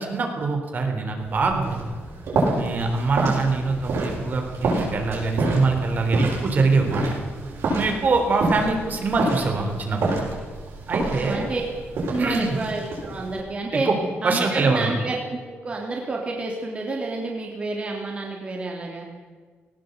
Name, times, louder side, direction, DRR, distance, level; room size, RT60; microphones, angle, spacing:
voice 1, 0.0-1.8 2.5-7.0 7.7-10.1 10.9-11.5 12.2-12.6 13.9-14.0 14.2-14.9, right 3 dB, 45° right, 3 dB, 3.5 m, -23 dB
sound 1, 1.2-13.4, right 2 dB, 75° right, 7.6 m, -28 dB
voice 2, 11.0-11.6 11.9-13.9 14.2-19.1, right 3 dB, 30° right, 0 dB, 3.2 m, -29 dB
18.5 x 18.5 x 8.2 m, 1.4 s
wide cardioid pair, 160°, 4 cm